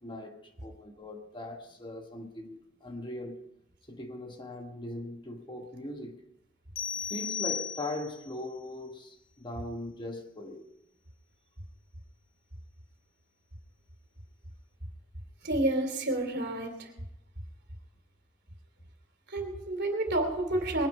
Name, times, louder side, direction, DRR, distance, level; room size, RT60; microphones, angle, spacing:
voice 1, 0.0-3.4 3.9-6.2 7.1-10.7, left 1 dB, 25° left, 1.3 m, -40 dB
sound 1, 6.8-8.3, left 7 dB, 80° left, 1.2 m, -35 dB
voice 2, 15.4-16.9 19.3-20.9, right 1 dB, 60° right, 3.0 m, -29 dB
21.0 x 10.0 x 5.4 m
head